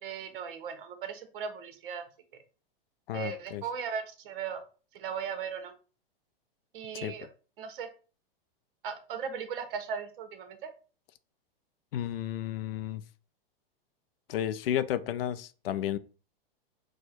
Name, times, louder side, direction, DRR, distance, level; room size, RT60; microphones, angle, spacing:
voice 1, 0.0-2.0 3.1-4.6 4.9-5.7 6.7-7.3 7.6-7.9 8.8-10.6, right 6 dB, 65° right, 1.1 m, -37 dB
voice 2, 3.1-3.6 6.9-7.1 11.9-13.0 14.3-16.0, left 11 dB, 75° left, 0.5 m, -32 dB
4.5 x 2.2 x 4.3 m
hypercardioid pair, 130°, 29 cm